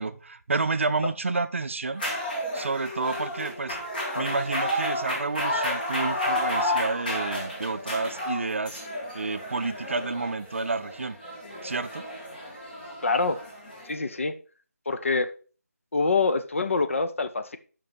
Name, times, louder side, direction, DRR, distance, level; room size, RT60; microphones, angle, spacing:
voice 1, 0.0-2.0 2.5-3.8 4.1-8.8 9.1-11.2 11.6-12.0, right 3 dB, 50° right, 0.5 m, -30 dB
sound 1, 1.9-13.9, left 1 dB, 35° left, 1.9 m, -31 dB
voice 2, 13.0-13.4 13.8-14.4 14.9-15.3 15.9-17.6, left 4 dB, 55° left, 0.6 m, -25 dB
5.4 x 5.3 x 4.9 m
figure-of-eight pair, 170°, 9 cm